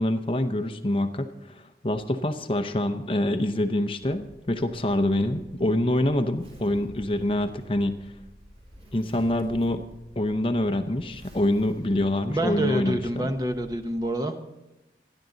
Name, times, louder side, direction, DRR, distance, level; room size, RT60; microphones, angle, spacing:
voice 1, 0.0-8.0 8.9-9.9 10.2-13.3, left 1 dB, 30° left, 8 dB, 0.7 m, -26 dB
Zipper (clothing), 4.0-13.9, equal, 35° right, 4.9 m, -50 dB
voice 2, 12.3-14.4, right 1 dB, 20° right, 6 dB, 1.0 m, -27 dB
26.5 x 11.0 x 4.0 m, 0.97 s
head